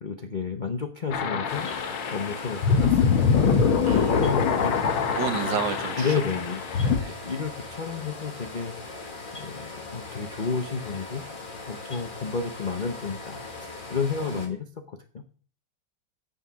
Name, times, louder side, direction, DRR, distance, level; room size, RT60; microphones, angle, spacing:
voice 1, 0.0-3.3 3.7-5.1 6.0-6.6 6.9-8.8 9.4-11.2 11.7-15.2, left 5 dB, 65° left, 6 dB, 0.4 m, -32 dB
sound 1, 1.1-7.0, left 6 dB, 85° left, 2.0 m, -24 dB
sound 2, 1.5-14.5, left 3 dB, 25° left, 1.6 m, -40 dB
voice 2, 3.8-4.6 5.1-6.2 6.8-7.2 14.3-14.4, right 7 dB, 65° right, 9 dB, 1.8 m, -32 dB
9.6 x 6.6 x 6.1 m, 0.41 s
omnidirectional pair, 2.2 m